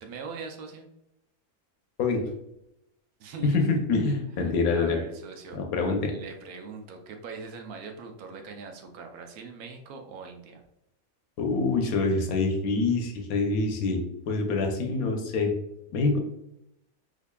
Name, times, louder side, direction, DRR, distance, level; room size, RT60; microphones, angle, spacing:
voice 1, 0.0-0.9 3.2-3.6 4.3-5.6 6.1-10.6, right 5 dB, 75° right, 4 dB, 1.1 m, -41 dB
voice 2, 3.4-5.0 5.5-6.1 11.4-15.5 15.9-16.2, left 3 dB, 70° left, 3 dB, 1.1 m, -25 dB
4.8 x 2.6 x 2.2 m, 0.83 s
omnidirectional pair, 1.6 m